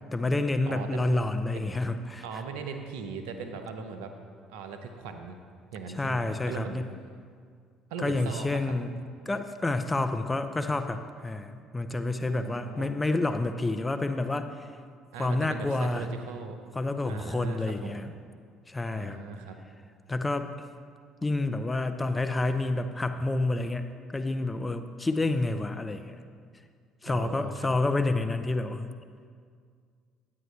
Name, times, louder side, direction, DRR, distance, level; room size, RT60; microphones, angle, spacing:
voice 1, 0.1-2.2 6.0-6.8 8.0-8.9 9.3-14.7 15.2-16.0 16.8-18.1 18.7-19.2 20.1-20.5 21.2-23.9 24.1-26.2 27.0-28.9, left 2 dB, 20° left, 9 dB, 0.6 m, -29 dB
voice 2, 0.6-1.0 1.5-1.6 2.2-4.1 4.5-5.4 5.7-6.8 7.9-8.7 12.3-12.9 15.1-16.6 17.0-18.0 18.9-19.6 27.0-27.7, right 5 dB, 75° right, 6 dB, 0.7 m, -39 dB
9.6 x 9.0 x 3.2 m, 2.1 s
hypercardioid pair, 60°, 0 cm